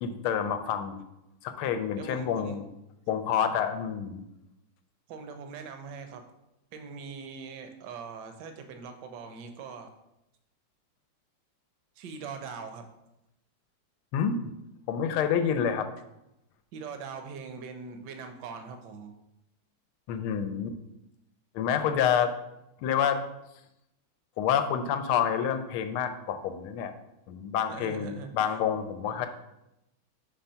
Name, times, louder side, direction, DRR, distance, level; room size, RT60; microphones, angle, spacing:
voice 1, 0.0-1.0 1.4-2.6 3.1-4.2 14.1-14.4 14.9-15.9 20.1-20.8 21.5-22.3 22.8-23.2 24.4-26.9 27.3-29.3, left 8 dB, 85° left, 9 dB, 1.5 m, -28 dB
voice 2, 2.0-2.6 5.1-6.2 6.7-9.9 12.0-12.9 16.7-19.1 27.7-28.6, right 5 dB, 65° right, 6 dB, 1.2 m, -42 dB
5.6 x 3.4 x 5.5 m, 0.88 s
omnidirectional pair, 2.3 m